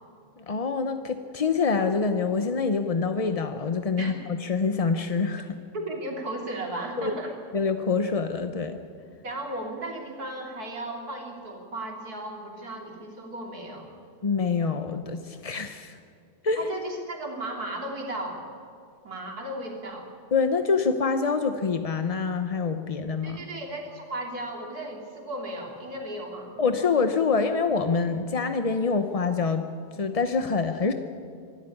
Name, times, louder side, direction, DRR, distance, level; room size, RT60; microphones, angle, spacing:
voice 1, 0.4-5.5 7.0-7.1 7.5-8.8 14.2-16.0 16.4-16.6 20.3-23.4 26.6-29.7 30.0-30.9, left 4 dB, 40° left, 8 dB, 0.5 m, -26 dB
voice 2, 5.7-7.3 9.2-13.9 16.6-18.4 19.0-20.1 23.2-26.5, right 1 dB, 70° right, 1 dB, 3.6 m, -35 dB
24.0 x 12.5 x 9.8 m, 2.3 s
omnidirectional pair, 1.7 m